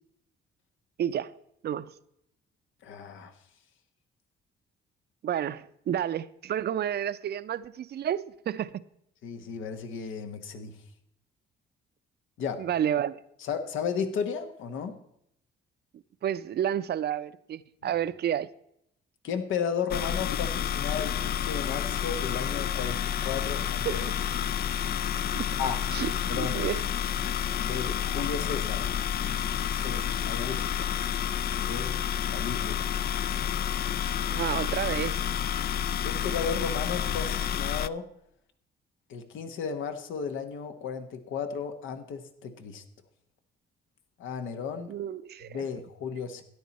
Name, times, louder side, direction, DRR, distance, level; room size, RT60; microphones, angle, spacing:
voice 1, 1.0-1.3 1.6-1.9 5.2-8.7 12.6-13.2 16.2-18.5 23.8-24.0 25.3-25.5 25.9-26.8 34.2-35.3 44.9-45.6, right 10 dB, 55° right, 0.6 m, -30 dB
voice 2, 2.8-3.3 9.2-10.7 12.4-12.6 13.4-14.9 17.8-17.9 19.2-24.0 25.6-25.8 26.3-26.6 27.6-28.8 29.7-30.9 31.6-31.9 32.3-32.9 36.0-38.0 39.1-42.8 44.2-44.9 45.5-46.4, left 6 dB, 80° left, 1.2 m, -34 dB
sound 1, 19.9-37.9, left 9 dB, 50° left, 0.4 m, -29 dB
13.0 x 10.0 x 4.1 m
cardioid pair, 90°, 20 cm